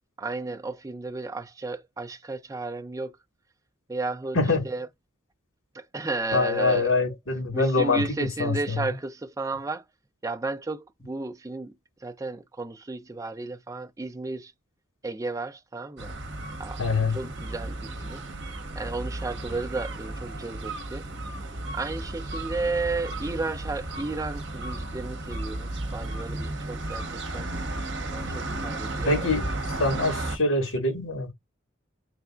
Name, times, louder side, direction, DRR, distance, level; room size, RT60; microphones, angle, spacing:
voice 1, 0.2-3.2 3.9-4.4 4.6-4.9 5.7-6.9 7.5-9.8 10.2-11.7 12.0-14.5 15.0-16.1 16.6-16.8 17.1-18.3 18.8-21.0 21.7-27.5 28.1-29.3, right 3 dB, 15° right, 0.4 m, -33 dB
voice 2, 6.3-8.9 16.8-17.2 29.0-29.5 29.8-31.3, left 3 dB, 90° left, 1.9 m, -24 dB
sound 1, 16.0-30.4, right 2 dB, 60° right, 0.9 m, -34 dB
3.9 x 3.3 x 2.4 m
head